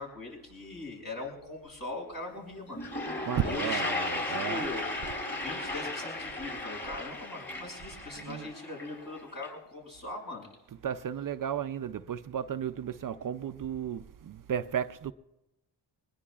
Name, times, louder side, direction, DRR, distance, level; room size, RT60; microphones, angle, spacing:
voice 1, 0.0-2.8 3.4-4.9 5.4-10.5, left 2 dB, 55° left, 5.9 m, -40 dB
Toilet flush, 2.3-2.4 2.7-9.5, left 2 dB, 25° left, 5.2 m, -36 dB
voice 2, 3.3-4.7 8.2-8.5 10.8-15.1, right 8 dB, 50° right, 0.5 m, -34 dB
22.0 x 20.0 x 2.4 m
cardioid pair, 90°, 42 cm